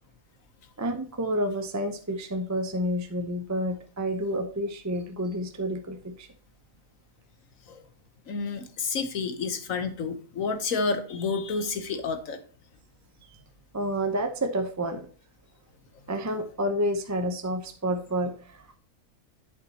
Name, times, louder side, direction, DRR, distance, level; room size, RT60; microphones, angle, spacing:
voice 1, 0.8-6.3 13.7-15.1 16.1-18.8, equal, 15° right, 6 dB, 0.6 m, -29 dB
voice 2, 8.3-12.4, left 4 dB, 65° left, 8 dB, 1.3 m, -30 dB
8.6 x 7.2 x 2.9 m, 0.43 s
omnidirectional pair, 1.6 m